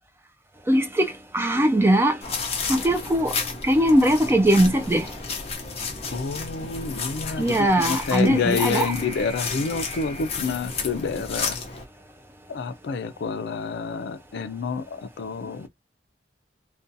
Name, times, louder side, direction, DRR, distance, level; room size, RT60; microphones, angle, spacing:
voice 1, 0.7-1.1 1.3-2.2 2.7-3.4 3.6-5.1 7.4-8.9, right 1 dB, 15° right, 0.3 m, -20 dB
sound 1, 2.2-11.8, left 4 dB, 35° left, 0.7 m, -32 dB
voice 2, 6.1-7.6 7.9-11.6 12.5-15.7, left 5 dB, 65° left, 0.4 m, -28 dB
2.6 x 2.2 x 2.5 m
head